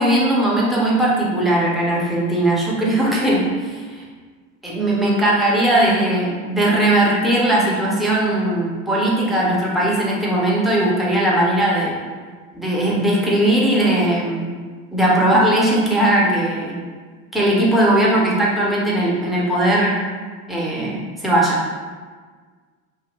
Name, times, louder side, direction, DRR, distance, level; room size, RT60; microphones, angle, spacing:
voice 1, 0.0-4.0 4.6-12.0 12.5-14.5 14.9-16.7 17.3-20.0 20.5-21.7, right 1 dB, ahead, -6 dB, 0.5 m, -18 dB
2.5 x 2.0 x 3.5 m, 1.5 s
figure-of-eight pair, 70°, 41 cm